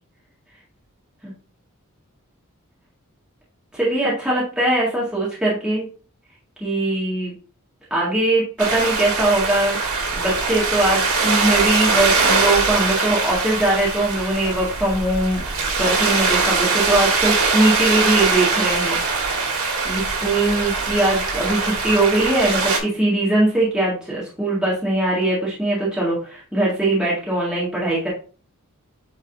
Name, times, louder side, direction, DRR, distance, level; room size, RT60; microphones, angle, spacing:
voice 1, 3.7-5.9 6.6-7.3 7.9-9.8 10.1-19.0 19.8-28.1, right 1 dB, 5° right, -7 dB, 1.9 m, -21 dB
sound 1, 8.6-22.8, right 4 dB, 80° right, 2.2 m, -22 dB
9.0 x 4.0 x 2.6 m, 0.38 s
head